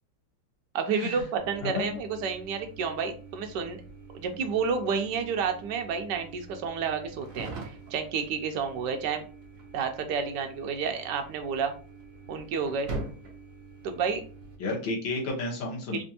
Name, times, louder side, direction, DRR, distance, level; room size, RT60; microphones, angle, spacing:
voice 1, 0.7-3.8 4.1-7.5 7.9-9.2 9.7-11.7 12.3-12.9 13.8-14.2 15.9-16.0, right 6 dB, 75° right, 6 dB, 1.2 m, -30 dB
sound 1, 1.4-14.6, right 3 dB, 55° right, 1.2 m, -44 dB
voice 2, 1.6-2.0 14.6-16.0, left 3 dB, 85° left, -3 dB, 1.9 m, -32 dB
4.3 x 2.5 x 2.8 m, 0.39 s
omnidirectional pair, 2.0 m